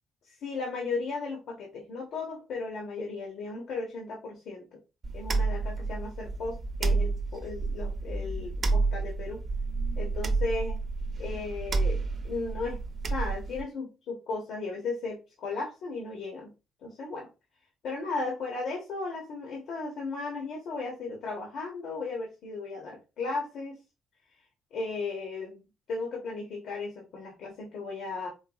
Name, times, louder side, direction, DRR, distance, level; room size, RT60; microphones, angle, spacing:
voice 1, 0.2-4.8 5.1-9.4 10.0-10.8 11.2-12.8 13.1-16.5 16.8-17.3 17.8-23.8 24.7-25.6 25.9-28.3, left 3 dB, 75° left, -1 dB, 1.3 m, -35 dB
sound 1, 5.0-13.6, right 3 dB, 45° right, 0.8 m, -30 dB
4.6 x 2.9 x 2.4 m, 0.28 s
cardioid pair, 90°, 0 cm